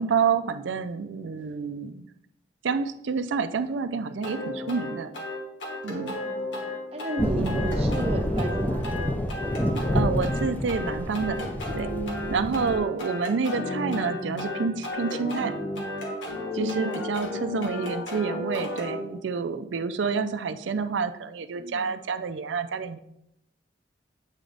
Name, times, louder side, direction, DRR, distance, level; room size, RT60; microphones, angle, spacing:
voice 1, 0.0-2.1 2.6-5.1 5.8-6.2 7.4-7.6 9.9-11.5 11.8-12.0 12.3-15.6 16.5-23.0, right 5 dB, 85° right, 11 dB, 0.4 m, -28 dB
sound 1, 4.2-19.0, left 1 dB, 85° left, 1.3 m, -33 dB
voice 2, 6.2-6.6 6.9-9.1 12.3-12.6 16.4-17.4 21.6-21.9, right 1 dB, 35° right, 3 dB, 0.7 m, -34 dB
sound 2, 7.2-12.8, left 1 dB, 10° left, 0.4 m, -28 dB
8.2 x 3.9 x 3.3 m, 0.78 s
head